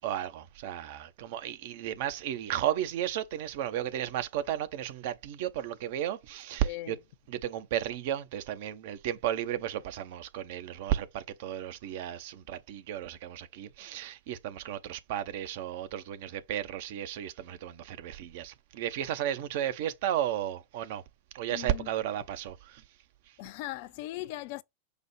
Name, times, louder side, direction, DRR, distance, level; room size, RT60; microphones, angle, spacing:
voice 1, 0.0-7.0 7.3-21.0 21.3-22.6, right 11 dB, 50° right, 0.5 m, -34 dB
voice 2, 6.6-7.0 21.5-21.9 23.4-24.6, left 16 dB, 50° left, 0.3 m, -39 dB
5.0 x 2.0 x 4.4 m
figure-of-eight pair, 90°, 0 cm